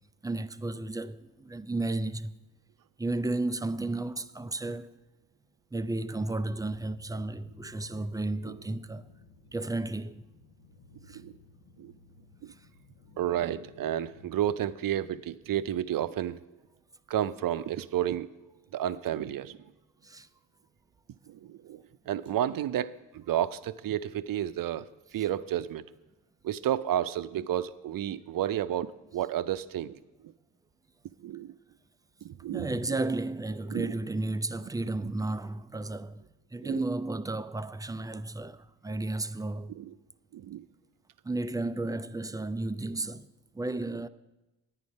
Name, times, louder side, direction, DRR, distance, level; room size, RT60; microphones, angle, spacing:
voice 1, 0.2-2.3 3.0-5.0 5.7-9.1 9.5-10.2 11.1-11.2 12.5-12.7 20.0-20.3 32.5-36.3 36.5-39.8 41.2-44.1, right 2 dB, 10° right, 0.4 m, -33 dB
sound 1, 6.2-14.4, left 2 dB, 60° left, 0.9 m, -56 dB
voice 2, 13.2-16.4 17.1-18.3 18.7-19.6 21.3-24.9 25.1-25.8 26.4-30.0 31.2-31.5 32.2-32.7 33.7-33.9 36.6-36.8 39.8-39.9 40.3-40.6, right 11 dB, 55° right, 0.6 m, -31 dB
9.7 x 9.6 x 5.3 m
supercardioid pair, 50°, 42 cm